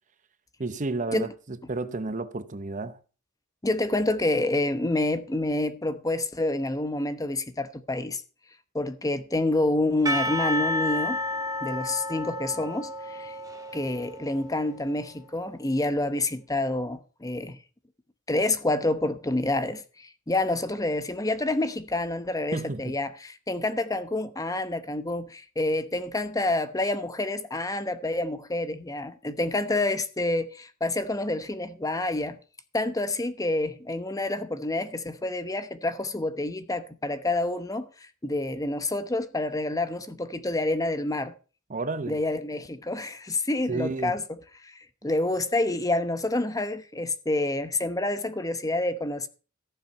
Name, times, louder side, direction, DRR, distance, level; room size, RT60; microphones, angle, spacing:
voice 1, 0.6-3.0 22.5-22.9 41.7-42.2 43.7-44.2, right 3 dB, 40° right, 0.8 m, -31 dB
voice 2, 3.6-8.2 8.7-11.2 11.6-13.4 13.7-17.6 18.3-32.4 32.7-41.3 42.1-44.2 44.6-49.3, left 2 dB, 15° left, 0.9 m, -28 dB
Percussion / Church bell, 10.1-14.8, left 1 dB, 20° right, 1.6 m, -31 dB
14.5 x 7.5 x 5.6 m
head